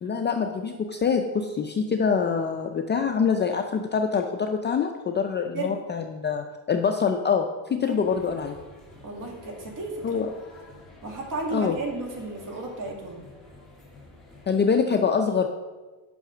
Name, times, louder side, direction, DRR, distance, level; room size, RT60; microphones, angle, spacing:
voice 1, 0.0-8.6 10.0-10.3 11.5-11.8 14.5-15.5, left 6 dB, 25° left, 4 dB, 0.4 m, -25 dB
voice 2, 5.5-5.9 7.8-8.1 9.0-10.2 11.0-13.2, right 2 dB, 40° right, 1 dB, 2.2 m, -34 dB
sound 1, 8.0-14.5, left 2 dB, ahead, 2.2 m, -49 dB
9.4 x 5.7 x 6.1 m, 1.3 s
cardioid pair, 145°, 47 cm